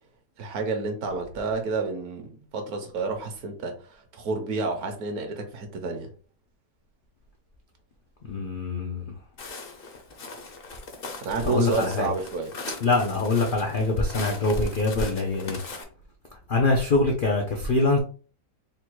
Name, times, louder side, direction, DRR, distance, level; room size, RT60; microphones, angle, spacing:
voice 1, 0.4-2.3 2.5-6.1 11.2-12.5, right 4 dB, 65° right, 1.3 m, -30 dB
voice 2, 8.2-9.0 11.4-12.1 12.8-15.6 16.5-18.0, left 2 dB, 80° left, 0.4 m, -24 dB
Walk footsteps, 9.4-15.8, left 3 dB, 50° left, 0.7 m, -40 dB
4.0 x 2.2 x 4.5 m
omnidirectional pair, 1.8 m